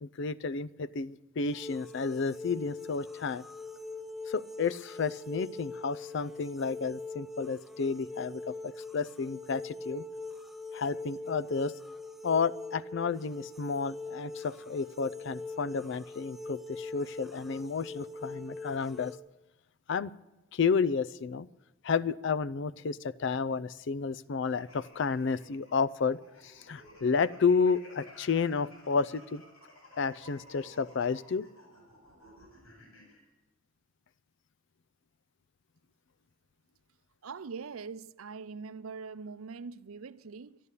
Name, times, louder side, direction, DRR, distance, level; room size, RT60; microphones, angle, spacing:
voice 1, 0.0-3.5 4.3-10.1 10.7-11.7 12.2-19.2 19.9-20.1 20.5-21.5 21.8-29.4 30.0-31.4, left 5 dB, 60° left, 0.4 m, -31 dB
sound 1, 1.5-19.2, left 3 dB, ahead, 0.6 m, -43 dB
sound 2, 24.6-33.2, left 1 dB, 90° left, 5.4 m, -55 dB
voice 2, 37.2-40.6, right 5 dB, 90° right, 0.6 m, -42 dB
12.5 x 11.0 x 8.3 m
head